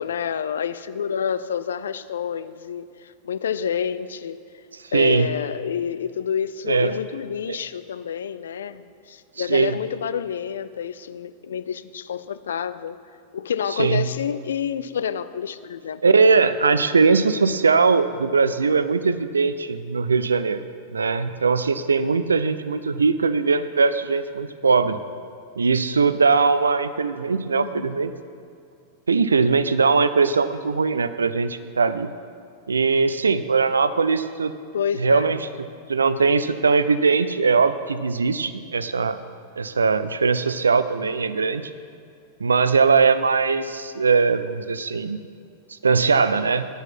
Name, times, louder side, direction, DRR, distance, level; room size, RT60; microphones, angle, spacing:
voice 1, 0.0-4.4 4.9-13.0 13.3-16.2 27.5-27.9 34.7-35.3, left 8 dB, 65° left, 14 dB, 0.3 m, -28 dB
voice 2, 4.9-5.3 6.7-6.9 9.4-9.8 13.8-14.1 16.0-20.6 20.9-25.0 25.6-28.1 29.1-32.1 32.7-34.5 35.0-35.4 35.9-39.2 39.6-41.7 42.4-45.2 45.8-46.7, right 4 dB, 75° right, 13 dB, 0.4 m, -20 dB
9.5 x 6.9 x 5.9 m, 2.3 s
figure-of-eight pair, 90°, 0 cm